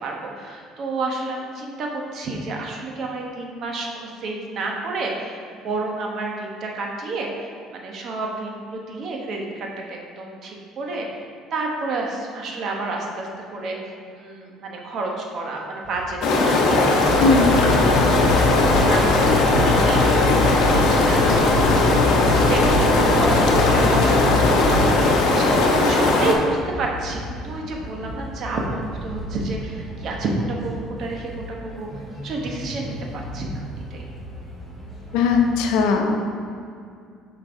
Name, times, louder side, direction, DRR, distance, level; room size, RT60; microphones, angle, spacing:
voice 1, 0.0-11.2 11.5-13.8 14.1-21.4 21.8-33.6 33.9-34.0, right 3 dB, 40° right, 0 dB, 0.9 m, -30 dB
sound 1, 15.8-35.7, equal, 5° right, 1.3 m, -37 dB
sound 2, 16.2-26.3, left 2 dB, 55° left, 0.9 m, -18 dB
sound 3, 17.1-25.1, left 2 dB, 30° left, 0.7 m, -24 dB
voice 2, 17.2-17.5 35.1-36.2, left 4 dB, 80° left, 3 dB, 0.8 m, -18 dB
7.3 x 5.3 x 3.8 m, 2.4 s
cardioid pair, 180°, 0 cm